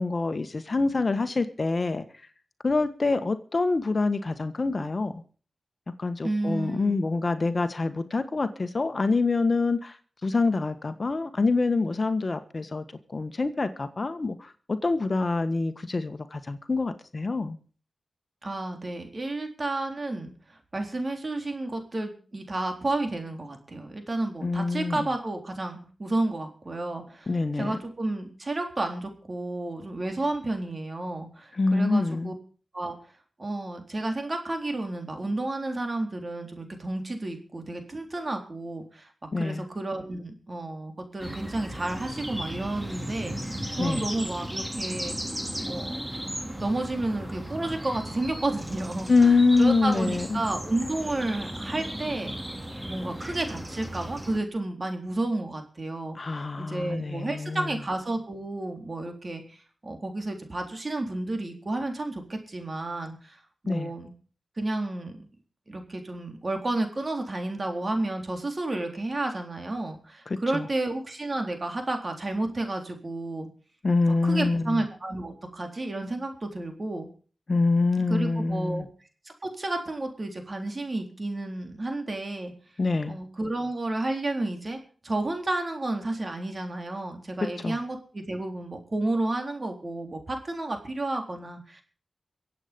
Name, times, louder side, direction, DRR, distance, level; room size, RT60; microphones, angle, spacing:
voice 1, 0.0-2.0 2.6-5.1 6.0-10.0 10.2-12.8 13.1-14.5 14.8-17.6 24.4-25.1 27.3-27.8 31.6-32.3 39.3-39.6 43.8-44.0 49.1-50.4 56.1-57.8 63.7-63.9 70.3-70.7 73.8-74.8 77.5-78.8 82.8-83.2 87.6-87.8, left 3 dB, 50° left, 10 dB, 1.5 m, -25 dB
voice 2, 6.2-7.0 18.4-27.3 27.6-32.3 32.7-32.9 33.4-39.1 39.4-45.2 45.6-46.0 46.6-52.4 52.9-64.1 64.6-65.1 65.7-73.5 74.1-77.1 78.1-78.9 79.4-82.5 83.1-91.8, right 2 dB, 45° right, 4 dB, 3.8 m, -31 dB
sound 1, 41.2-54.4, equal, 10° right, 3.0 m, -36 dB
23.5 x 8.3 x 5.3 m, 0.40 s
cardioid pair, 55°, 0 cm